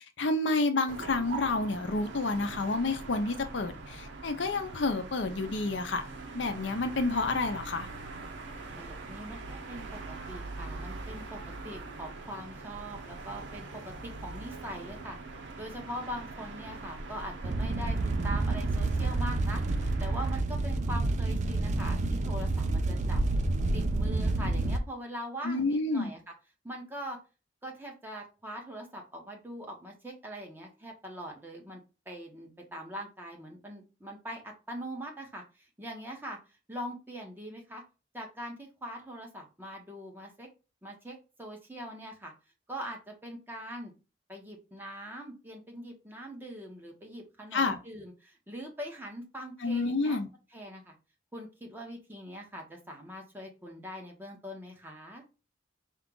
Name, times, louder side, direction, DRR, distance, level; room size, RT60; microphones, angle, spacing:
voice 1, 0.2-6.0 6.3-7.9 25.4-26.1 47.5-47.8 49.6-50.3, left 3 dB, 75° left, 0.6 m, -29 dB
sound 1, 0.9-20.4, right 3 dB, 80° right, 0.8 m, -43 dB
voice 2, 8.7-15.2 15.6-19.6 20.0-23.2 23.7-26.2 26.6-27.2 27.6-35.4 35.8-36.4 36.7-37.8 38.1-40.5 40.8-42.3 42.7-43.9 44.3-50.2 50.5-50.9 51.3-55.2, equal, 10° right, 1.1 m, -42 dB
sound 2, 17.4-24.8, right 2 dB, 40° right, 0.4 m, -29 dB
4.5 x 2.4 x 3.8 m
head